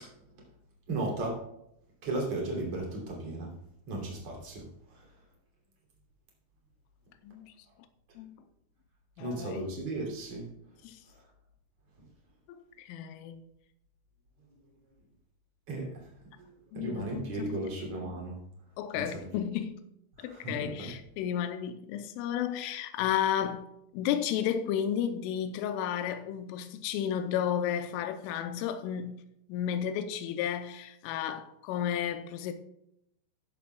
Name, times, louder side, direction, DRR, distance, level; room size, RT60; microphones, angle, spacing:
voice 1, 0.9-1.4 2.0-3.5 3.9-4.6 9.2-10.5 15.7-15.9 16.7-18.4 20.2-20.9, right 2 dB, 35° right, 3.4 m, -35 dB
voice 2, 7.2-7.5 8.2-8.4 9.2-9.7 10.8-11.0 12.5-13.4 16.7-17.7 18.8-19.8 20.2-23.7 23.9-29.1 29.5-32.5, left 9 dB, 85° left, 3.2 m, -33 dB
14.5 x 10.5 x 2.3 m
omnidirectional pair, 5.8 m